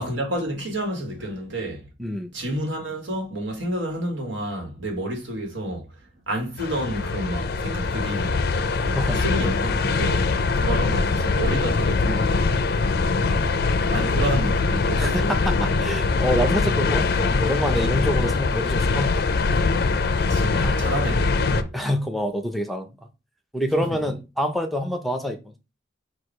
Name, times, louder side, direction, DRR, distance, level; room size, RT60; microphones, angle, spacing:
voice 1, 0.0-1.9 2.3-6.0 6.3-8.4 8.8-12.3 13.1-15.3 20.2-21.7 23.7-24.1, right 1 dB, 70° right, 1.5 m, -30 dB
voice 2, 2.0-2.3 8.8-9.2 15.0-19.2 20.5-20.9 21.7-22.9 23.5-25.4, equal, ahead, 0.5 m, -27 dB
sound 1, 6.6-21.6, left 4 dB, 50° left, 0.4 m, -22 dB
4.7 x 2.4 x 4.6 m
head